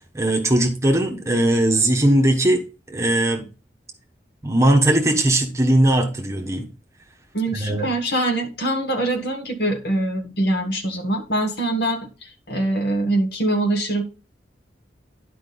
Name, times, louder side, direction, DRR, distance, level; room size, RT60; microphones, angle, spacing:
voice 1, 0.1-3.4 4.4-6.7 7.5-7.9, right 1 dB, 15° right, 1.2 m, -19 dB
voice 2, 7.3-14.0, right 1 dB, 65° left, 1.6 m, -23 dB
10.5 x 5.0 x 3.9 m
head